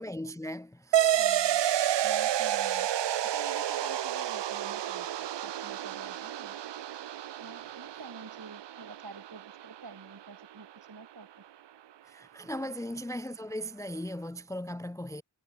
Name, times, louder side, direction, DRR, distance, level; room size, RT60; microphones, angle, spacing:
voice 1, 0.0-1.2 12.0-15.2, equal, 5° left, 0.5 m, -38 dB
sound 1, 0.9-10.0, right 11 dB, 70° right, 0.5 m, -30 dB
voice 2, 1.2-1.6 2.0-2.9 3.2-6.5 7.4-11.3 12.5-12.8, right 4 dB, 55° right, 3.4 m, -48 dB
wide cardioid pair, 55°, 44 cm